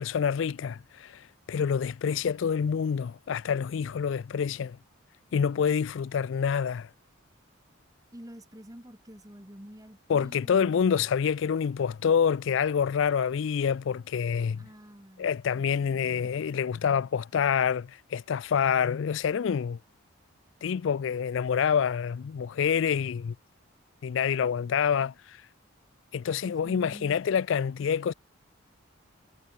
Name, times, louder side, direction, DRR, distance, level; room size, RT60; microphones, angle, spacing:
voice 1, 0.0-4.8 5.3-6.9 10.1-14.7 15.2-19.8 20.6-23.3 24.0-25.4 26.1-28.1, left 7 dB, 65° left, 0.4 m, -27 dB
voice 2, 8.1-11.0 14.6-16.3 26.4-27.2, equal, 15° right, 2.6 m, -48 dB
head